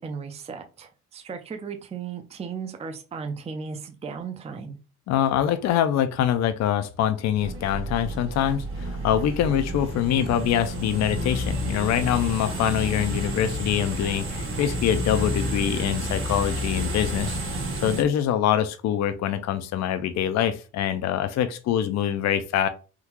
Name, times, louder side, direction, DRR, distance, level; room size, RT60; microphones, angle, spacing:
voice 1, 0.0-4.8, right 5 dB, 20° right, 6 dB, 0.5 m, -36 dB
voice 2, 5.1-22.7, left 10 dB, 60° left, 10 dB, 0.4 m, -24 dB
sound 1, 7.4-18.0, equal, 45° right, 1.3 m, -30 dB
3.6 x 2.3 x 2.9 m, 0.33 s
cardioid pair, 90°, 30 cm